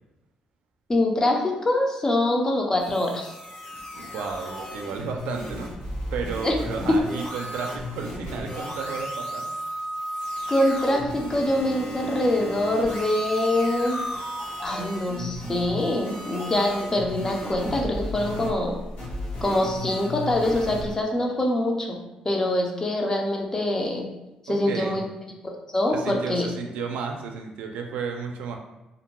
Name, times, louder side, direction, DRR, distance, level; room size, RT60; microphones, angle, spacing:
voice 1, 0.9-3.3 6.4-6.6 6.9-7.0 10.5-14.0 14.6-18.8 19.4-22.0 22.2-24.1 24.4-25.0 25.7-26.5, left 1 dB, 25° left, 1 dB, 0.5 m, -24 dB
sound 1, 2.8-20.9, equal, 65° left, 1.0 m, -34 dB
voice 2, 3.9-5.7 6.1-9.5 24.5-25.0 25.9-28.6, right 5 dB, 85° right, 3 dB, 0.4 m, -33 dB
2.5 x 2.1 x 2.9 m, 1.0 s
cardioid pair, 105°, 2 cm